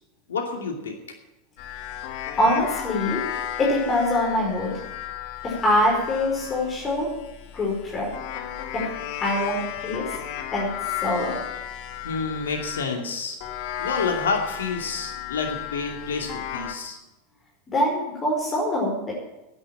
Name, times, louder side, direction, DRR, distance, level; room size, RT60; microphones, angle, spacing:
voice 1, 0.3-0.9 12.0-13.4 13.8-17.0, left 4 dB, 75° left, 3 dB, 2.6 m, -28 dB
sound 1, 1.6-12.9 13.4-16.7, left 11 dB, 55° left, 1.6 m, -34 dB
voice 2, 2.4-3.2 3.6-4.8 5.4-7.1 7.5-8.1 8.7-8.9 9.2-10.0 10.5-10.7 11.0-11.4 17.7-19.1, left 1 dB, 25° left, -3 dB, 5.0 m, -24 dB
10.5 x 9.9 x 8.9 m, 1.0 s
figure-of-eight pair, 80°, 0 cm